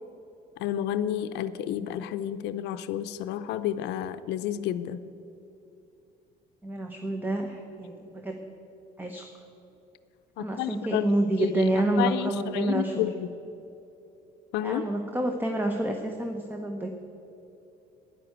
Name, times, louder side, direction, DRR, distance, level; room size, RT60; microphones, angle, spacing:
voice 1, 0.6-5.0 10.4-11.7 12.0-13.3 14.5-14.9, left 11 dB, 85° left, 11 dB, 0.5 m, -31 dB
voice 2, 6.6-8.4 9.0-9.3 10.4-13.1 14.6-16.9, right 1 dB, 10° right, 4 dB, 1.0 m, -28 dB
11.0 x 10.5 x 8.1 m, 2.9 s
cardioid pair, 110°, 17 cm